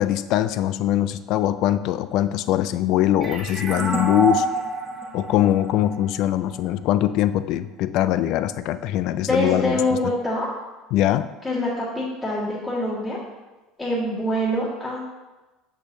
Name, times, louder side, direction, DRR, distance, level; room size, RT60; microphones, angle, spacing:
voice 1, 0.0-4.5 5.1-9.8 10.9-11.3, left 12 dB, 60° left, 13 dB, 0.3 m, -22 dB
sound 1, 3.2-6.6, right 2 dB, 25° right, 1.2 m, -28 dB
voice 2, 9.3-10.5 11.4-13.2 13.8-15.0, left 1 dB, 20° left, -11 dB, 1.9 m, -25 dB
6.2 x 6.1 x 2.8 m, 1.1 s
supercardioid pair, 110°, 0 cm